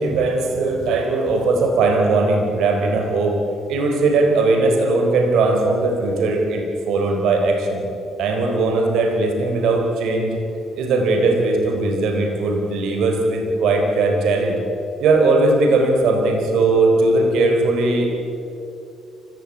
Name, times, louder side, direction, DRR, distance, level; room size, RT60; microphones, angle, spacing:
voice 1, 0.0-3.4 3.7-7.8 8.2-10.4 10.8-14.6 15.0-18.2, right 3 dB, 85° right, 3 dB, 4.0 m, -19 dB
24.5 x 16.0 x 8.7 m, 2.8 s
cardioid pair, 90°, 0 cm